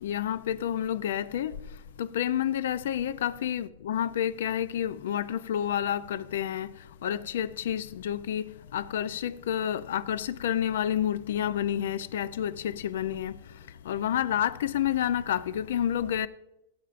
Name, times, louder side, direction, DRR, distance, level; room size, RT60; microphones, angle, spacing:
voice 1, 0.0-1.6 2.0-6.7 7.0-13.4 13.8-16.3, left 10 dB, 80° left, 0.5 m, -29 dB
18.5 x 8.7 x 2.5 m
supercardioid pair, 140°, 0 cm